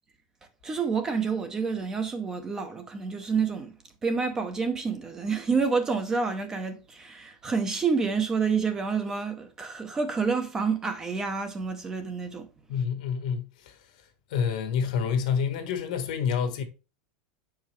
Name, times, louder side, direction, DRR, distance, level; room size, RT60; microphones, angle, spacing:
voice 1, 0.6-3.8 4.0-12.5, right 5 dB, 15° right, 0.6 m, -28 dB
voice 2, 12.7-13.5 14.3-16.6, left 7 dB, 70° left, 1.3 m, -27 dB
7.0 x 4.8 x 3.1 m
supercardioid pair, 170°, 4 cm